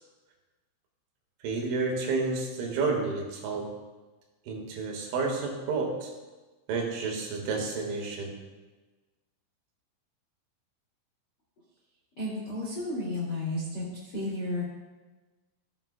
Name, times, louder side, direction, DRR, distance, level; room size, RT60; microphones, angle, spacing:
voice 1, 1.4-3.7 4.5-6.1 6.7-8.4, right 4 dB, 75° right, 0 dB, 3.9 m, -30 dB
voice 2, 12.2-13.8 14.1-14.6, left 1 dB, 45° left, -7 dB, 1.3 m, -32 dB
14.5 x 9.0 x 2.2 m, 1.2 s
omnidirectional pair, 5.7 m